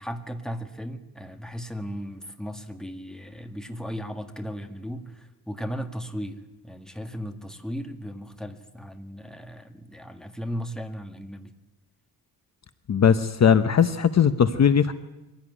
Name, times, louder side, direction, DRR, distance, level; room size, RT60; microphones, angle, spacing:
voice 1, 0.0-11.5, equal, ahead, 6 dB, 1.9 m, -36 dB
voice 2, 12.9-14.9, left 7 dB, 45° left, 11 dB, 0.9 m, -19 dB
23.0 x 16.5 x 9.7 m, 1.1 s
wide cardioid pair, 120°, 38 cm